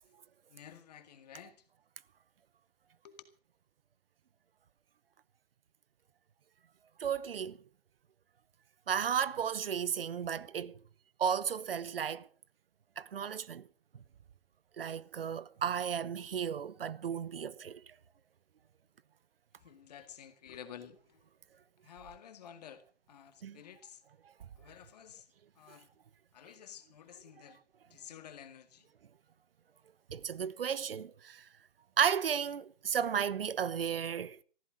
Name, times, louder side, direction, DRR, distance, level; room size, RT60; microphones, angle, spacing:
voice 1, 0.5-1.6 3.0-3.2 19.6-21.2 21.8-24.0 24.6-25.3 25.6-25.9 26.3-27.6 27.9-28.9, left 9 dB, 40° left, 2.0 m, -52 dB
voice 2, 7.0-7.6 8.9-10.7 11.2-12.3 13.0-13.6 14.8-17.8 23.4-23.6 30.1-31.4 32.0-34.4, right 8 dB, 70° right, 0.9 m, -33 dB
14.5 x 12.5 x 6.3 m
hypercardioid pair, 160°, 30 cm